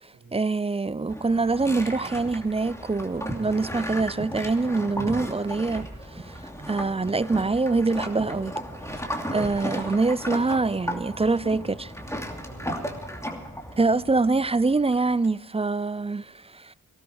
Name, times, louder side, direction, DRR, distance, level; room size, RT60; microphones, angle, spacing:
voice 1, 0.0-8.5 9.3-11.9 13.8-16.7, right 3 dB, 15° right, 0.4 m, -25 dB
sound 1, 1.1-15.3, equal, 10° left, 2.7 m, -35 dB
voice 2, 8.9-9.4 12.4-13.1 15.6-16.1, right 3 dB, 75° right, 2.7 m, -51 dB
19.0 x 12.5 x 4.7 m
cardioid pair, 50°, 35 cm